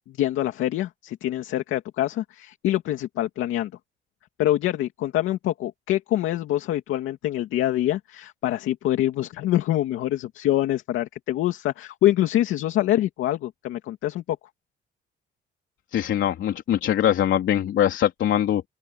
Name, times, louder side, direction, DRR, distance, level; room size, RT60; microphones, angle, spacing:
voice 1, 0.1-3.7 4.4-14.4, left 13 dB, 90° left, 2.5 m, -25 dB
voice 2, 15.9-18.7, left 11 dB, 70° left, 3.5 m, -22 dB
open air
cardioid pair, 90°, 20 cm